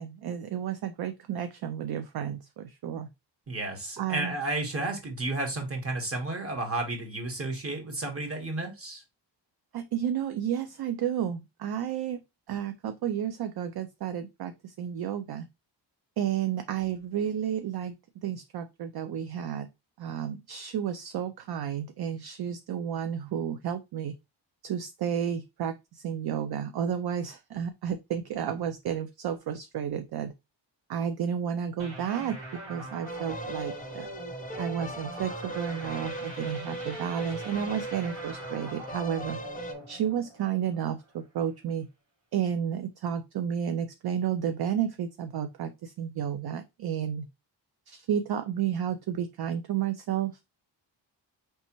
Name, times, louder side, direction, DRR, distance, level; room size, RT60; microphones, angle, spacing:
voice 1, 0.0-3.1 4.0-4.3 9.7-12.2 12.5-15.5 16.2-17.9 18.2-19.7 20.0-24.1 24.6-30.3 30.9-32.4 32.7-34.1 34.6-39.4 39.9-41.9 42.3-47.3 47.9-50.3, right 9 dB, 55° right, 0.5 m, -31 dB
voice 2, 3.5-9.0, right 2 dB, 30° right, 1.4 m, -32 dB
sound 1, 31.8-41.1, right 1 dB, 90° right, 2.6 m, -42 dB
sound 2, 33.1-39.7, right 1 dB, 20° left, 0.6 m, -39 dB
4.2 x 3.4 x 2.9 m
wide cardioid pair, 115°, 45 cm